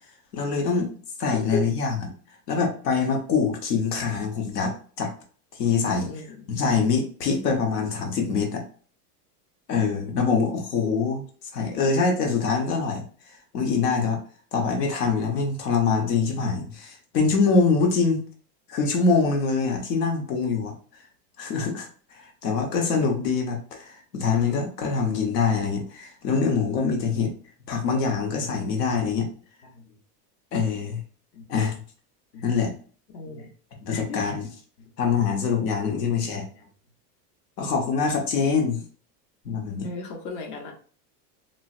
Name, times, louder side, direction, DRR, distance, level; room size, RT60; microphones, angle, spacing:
voice 1, 0.3-0.9 1.2-2.0 2.5-5.1 5.5-6.1 6.5-8.6 9.7-11.2 11.5-13.0 13.5-14.2 14.5-18.2 18.7-20.7 21.4-21.9 22.1-27.3 27.7-29.3 30.5-31.0 31.5-31.8 32.4-32.7 33.8-34.5 35.0-36.4 37.6-38.8 39.4-39.9, left 5 dB, 85° left, 2 dB, 1.0 m, -24 dB
voice 2, 5.9-6.5 10.8-11.0 29.7-29.8 31.3-31.4 32.3-32.4 33.1-33.5 33.9-34.2 35.9-36.1 39.8-40.7, left 3 dB, 55° left, 2 dB, 1.0 m, -35 dB
3.9 x 2.1 x 2.4 m, 0.43 s
supercardioid pair, 125°, 47 cm